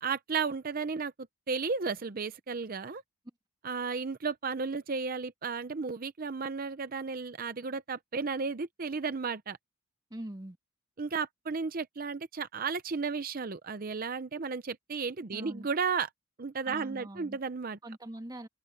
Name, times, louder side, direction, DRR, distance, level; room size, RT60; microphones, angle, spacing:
voice 1, 0.0-3.0 3.6-9.6 11.0-16.1 16.4-17.8, right 5 dB, 40° right, 0.6 m, -34 dB
voice 2, 10.1-10.6 15.3-15.7 16.7-17.4 17.8-18.5, right 1 dB, 20° right, 1.8 m, -42 dB
head